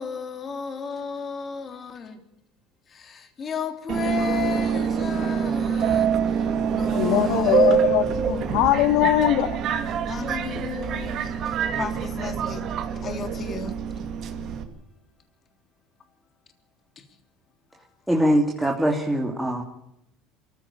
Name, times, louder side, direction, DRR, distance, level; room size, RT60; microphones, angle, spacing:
voice 1, 0.0-2.2 2.9-7.7 10.1-12.7 13.0-13.7 17.0-17.1, left 6 dB, 35° left, 3.4 m, -34 dB
Subway metro underground, 3.9-14.6, right 7 dB, 55° right, 2.6 m, -25 dB
voice 2, 7.0-9.6, left 13 dB, 70° left, 2.0 m, -21 dB
voice 3, 18.1-19.6, equal, ahead, 2.8 m, -22 dB
24.0 x 15.0 x 8.6 m
supercardioid pair, 95°, 0 cm